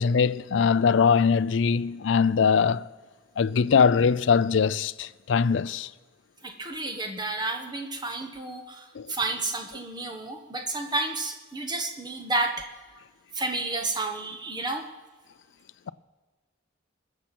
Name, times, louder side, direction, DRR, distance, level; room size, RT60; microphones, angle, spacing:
voice 1, 0.0-2.8 3.4-5.9 9.0-9.1, left 6 dB, 70° left, 0.4 m, -22 dB
voice 2, 6.4-12.7 13.3-14.9, right 2 dB, 20° right, 1.3 m, -31 dB
21.0 x 7.4 x 6.0 m
head